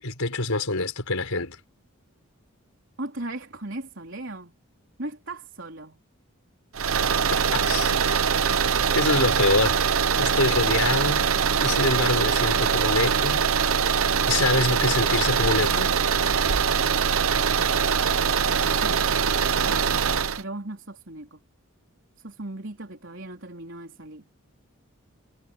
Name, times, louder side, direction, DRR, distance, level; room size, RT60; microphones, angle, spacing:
voice 1, 0.0-1.6 7.5-8.2 8.9-9.9 10.2-11.3 11.6-13.4 14.3-15.9, left 3 dB, 90° left, 4.9 m, -25 dB
voice 2, 3.0-4.5 5.0-6.0 18.8-19.0 20.4-21.4 22.2-24.3, right 2 dB, 60° right, 4.1 m, -37 dB
sound 1, 6.7-20.4, right 6 dB, 75° right, 0.8 m, -23 dB
head